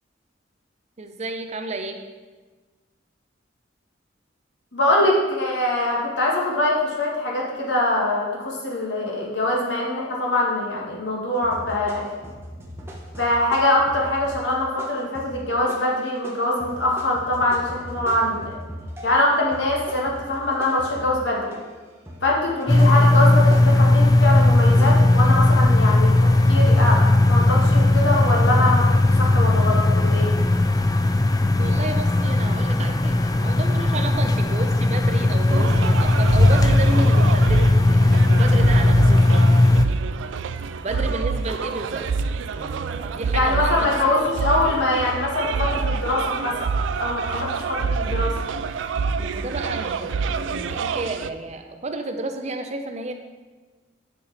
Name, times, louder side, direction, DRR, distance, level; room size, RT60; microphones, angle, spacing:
voice 1, 1.0-2.0 31.6-39.5 40.8-42.0 42.5-43.9 49.2-53.1, right 2 dB, 35° right, 5 dB, 0.6 m, -31 dB
voice 2, 4.7-12.2 13.2-18.6 19.0-21.6 22.2-30.3 40.9-41.0 43.3-46.6 47.0-48.3, left 1 dB, 70° left, -3 dB, 1.8 m, -23 dB
sound 1, 11.4-19.2 19.5-21.7 22.1-24.9, equal, 15° right, 1.0 m, -39 dB
sound 2, 22.7-39.9, left 2 dB, 20° left, 0.3 m, -17 dB
sound 3, 35.5-51.3, right 5 dB, 80° right, 0.4 m, -27 dB
9.6 x 5.1 x 4.1 m, 1.3 s
head